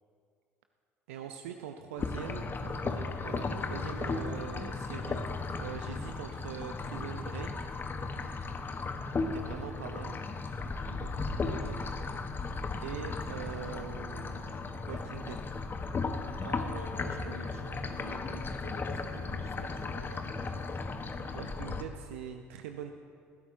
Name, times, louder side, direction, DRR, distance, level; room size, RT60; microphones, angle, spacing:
voice 1, 1.1-5.2 5.6-7.7 9.2-10.2 10.8-11.8 12.8-15.4 21.3-22.9, right 8 dB, 70° right, 6 dB, 0.6 m, -43 dB
sound 1, 2.0-21.8, left 3 dB, 30° left, 1.1 m, -36 dB
voice 2, 16.4-20.4, right 3 dB, 85° right, 4 dB, 1.0 m, -48 dB
21.0 x 15.5 x 2.7 m, 2.4 s
figure-of-eight pair, 60°, 7 cm